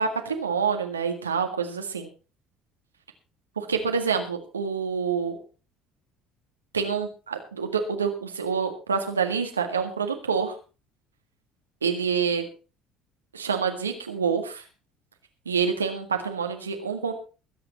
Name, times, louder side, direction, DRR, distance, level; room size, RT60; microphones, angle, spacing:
voice 1, 0.0-2.1 3.6-5.4 6.7-10.5 11.8-12.5 13.3-14.6 15.4-17.1, right 6 dB, 80° right, 5 dB, 1.8 m, -27 dB
21.5 x 8.6 x 4.2 m, 0.34 s
figure-of-eight pair, 55°, 0 cm